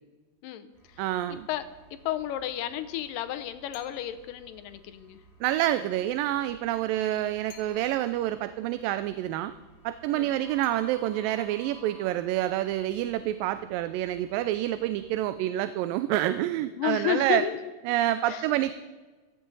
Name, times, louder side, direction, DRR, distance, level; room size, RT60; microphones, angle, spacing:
voice 1, 0.4-1.0 1.5-1.6 2.1-5.2 10.1-10.3 16.8-17.6 18.3-18.5, left 12 dB, 80° left, 10 dB, 2.3 m, -32 dB
sound 1, 0.7-15.3, right 2 dB, 25° right, 4.7 m, -56 dB
voice 2, 1.0-1.5 5.4-9.5 9.8-17.4 17.9-18.7, right 13 dB, 85° right, 12 dB, 2.3 m, -27 dB
sound 2, 3.7-4.3 7.5-8.2 10.6-11.4, left 6 dB, 55° left, 2.5 m, -54 dB
16.0 x 14.5 x 4.0 m, 1.3 s
omnidirectional pair, 4.0 m